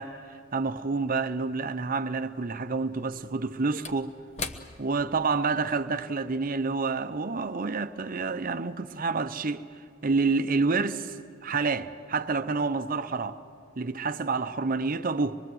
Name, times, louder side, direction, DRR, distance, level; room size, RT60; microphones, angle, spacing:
voice 1, 0.0-4.1 4.8-13.4 13.8-15.4, right 4 dB, 40° right, 0.7 m, -28 dB
Slam / Wood, 1.4-1.5 2.9-7.6 8.0-8.1, left 4 dB, 30° left, 1.0 m, -43 dB
24.5 x 22.0 x 7.8 m
head